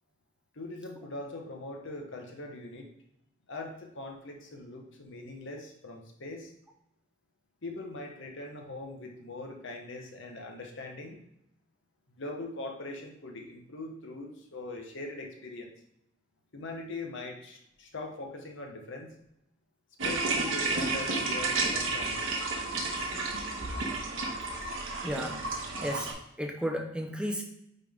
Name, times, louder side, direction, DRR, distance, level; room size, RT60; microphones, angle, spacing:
voice 1, 0.5-2.9 3.5-6.5 7.6-11.2 12.1-15.7 16.5-19.1 20.0-22.3, left 2 dB, 65° left, 1 dB, 1.2 m, -41 dB
sound 1, 20.0-26.1, right 3 dB, 70° right, 1.4 m, -31 dB
voice 2, 25.0-25.4 25.8-26.1 26.4-27.4, equal, 5° right, 2 dB, 0.7 m, -33 dB
9.5 x 3.9 x 3.6 m, 0.79 s
head